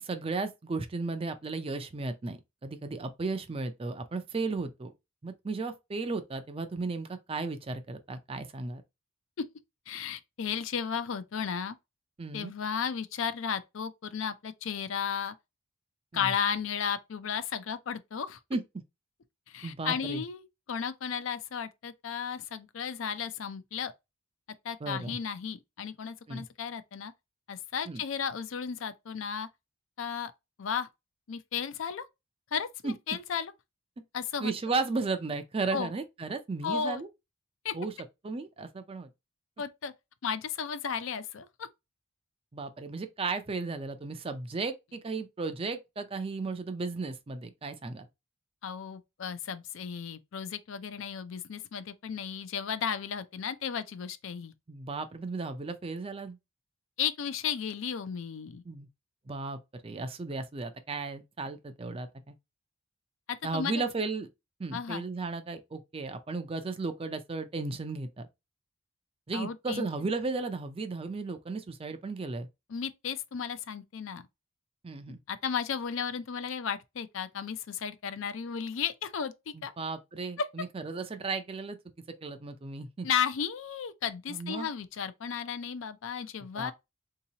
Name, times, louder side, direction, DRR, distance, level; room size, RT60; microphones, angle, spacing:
voice 1, 0.0-4.9 5.2-8.8 12.2-12.5 16.1-16.3 18.5-18.6 19.6-20.2 24.8-25.2 26.3-26.4 27.9-28.0 32.8-32.9 34.4-37.1 37.7-37.9 38.2-39.1 42.5-48.1 54.7-56.4 58.7-58.9 59.3-62.3 63.4-64.3 64.6-68.3 69.3-72.5 74.8-75.2 79.5-81.8 82.2-83.1 84.3-84.7 86.5-86.7, right 3 dB, 25° right, 0.4 m, -35 dB
voice 2, 9.9-11.8 12.3-15.3 16.1-18.4 19.5-23.9 24.6-27.1 27.5-29.5 30.0-30.3 30.6-30.9 31.3-32.1 32.5-33.5 34.1-34.5 35.7-35.9 36.6-37.0 37.6-37.7 39.6-39.9 40.2-41.7 48.6-54.5 57.0-58.6 63.3-63.8 64.7-65.0 69.3-69.8 72.7-74.2 75.3-79.7 80.4-80.5 83.0-86.7, left 7 dB, 65° left, 0.4 m, -34 dB
3.8 x 2.8 x 2.7 m
head